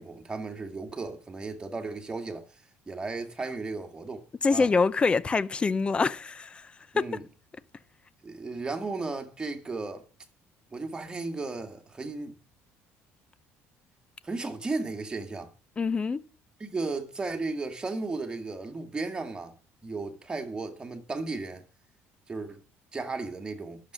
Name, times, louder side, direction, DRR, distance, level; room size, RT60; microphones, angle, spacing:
voice 1, 0.0-2.5 2.9-4.2 4.5-4.7 6.9-7.2 8.2-10.0 10.7-12.4 14.2-15.5 16.6-19.5 19.8-21.6 22.3-22.6 22.9-23.8, right 3 dB, 15° right, 2.2 m, -35 dB
voice 2, 4.4-7.1 15.8-16.2, left 4 dB, 20° left, 0.6 m, -25 dB
11.5 x 7.4 x 6.3 m
cardioid pair, 130°, 5 cm